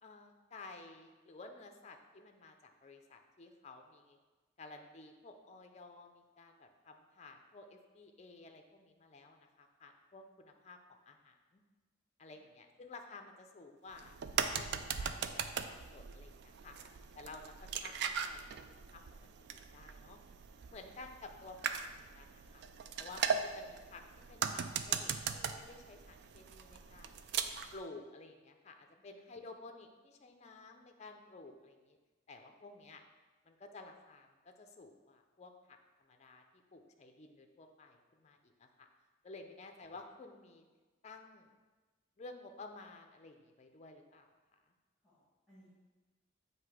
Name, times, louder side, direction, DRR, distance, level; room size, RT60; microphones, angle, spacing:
voice 1, 0.0-4.2 4.6-11.6 12.2-14.1 14.4-16.8 17.2-19.3 19.7-20.2 20.7-22.6 23.0-24.0 24.3-27.2 27.7-32.0 32.3-33.0 33.5-38.9 39.2-40.7 41.0-41.5 42.2-44.3, left 3 dB, 35° left, 5 dB, 0.4 m, -53 dB
sound 1, 13.9-27.8, right 7 dB, 55° right, 0.3 m, -39 dB
voice 2, 45.0-45.7, equal, ahead, -12 dB, 1.8 m, -66 dB
7.7 x 2.7 x 4.8 m, 1.3 s
head